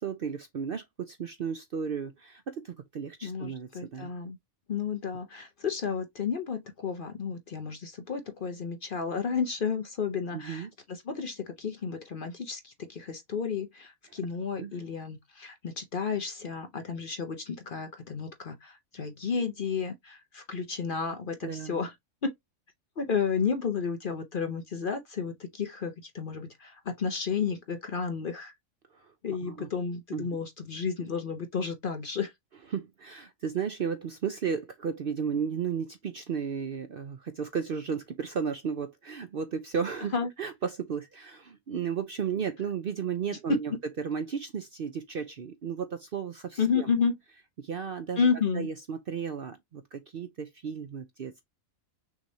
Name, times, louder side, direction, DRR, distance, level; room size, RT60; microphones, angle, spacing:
voice 1, 0.0-4.1 10.3-10.7 14.6-14.8 21.4-21.8 28.9-29.1 29.4-29.7 30.1-30.3 32.7-43.7 44.0-46.9 47.6-48.3 48.5-51.3, right 6 dB, 55° right, 0.6 m, -34 dB
voice 2, 3.2-4.4 4.7-21.9 22.2-22.3 23.0-28.5 29.2-32.3 40.1-40.3 43.5-43.6 46.6-47.2 48.2-48.7, left 6 dB, 45° left, 0.8 m, -32 dB
6.2 x 3.1 x 2.7 m
omnidirectional pair, 1.5 m